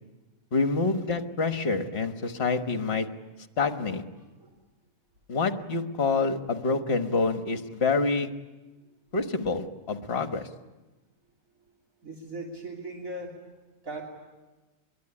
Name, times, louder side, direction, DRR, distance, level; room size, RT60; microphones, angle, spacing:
voice 1, 0.5-3.1 3.6-4.0 5.3-8.3 9.1-10.5, left 4 dB, 50° left, 7 dB, 1.7 m, -27 dB
voice 2, 12.0-13.3 13.8-14.0, right 2 dB, 80° right, -1 dB, 3.6 m, -38 dB
25.5 x 22.0 x 9.9 m, 1.2 s
omnidirectional pair, 1.4 m